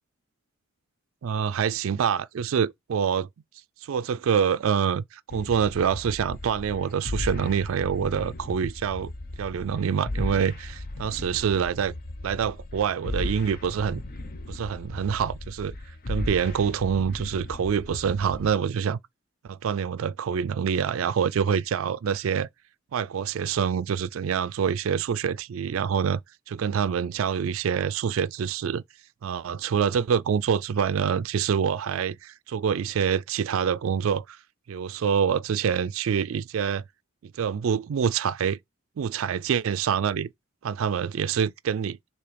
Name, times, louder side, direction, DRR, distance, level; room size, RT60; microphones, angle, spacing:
voice 1, 1.2-3.3 3.8-9.1 9.4-11.9 12.2-14.0 14.5-15.7 16.1-19.0 19.4-22.5 22.9-26.2 26.5-28.8 29.2-34.4 34.7-36.8 37.2-38.6 39.0-40.3 40.6-42.0, right 7 dB, 80° right, 0.4 m, -26 dB
sound 1, 5.3-18.5, left 2 dB, 45° left, 0.7 m, -36 dB
6.7 x 2.8 x 5.0 m
head